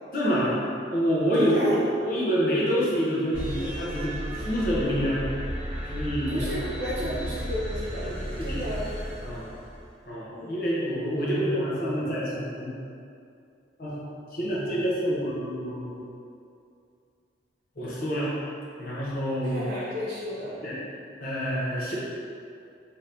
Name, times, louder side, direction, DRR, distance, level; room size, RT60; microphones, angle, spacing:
voice 1, 0.1-0.5 0.9-1.7 2.0-5.2 5.9-6.5 7.0-7.1 8.0-8.6 9.2-9.5 10.1-12.7 13.8-14.0 14.3-16.1 17.8-18.3 18.8-19.6 20.6-20.8 21.2-22.0, equal, 50° left, -7 dB, 0.7 m, -27 dB
voice 2, 1.4-1.9 6.3-8.9 10.3-10.6 19.4-20.6, equal, 60° right, -7 dB, 0.8 m, -32 dB
sound 1, 3.3-9.9, equal, 30° right, 1.4 m, -34 dB
2.9 x 2.6 x 3.3 m, 2.4 s
head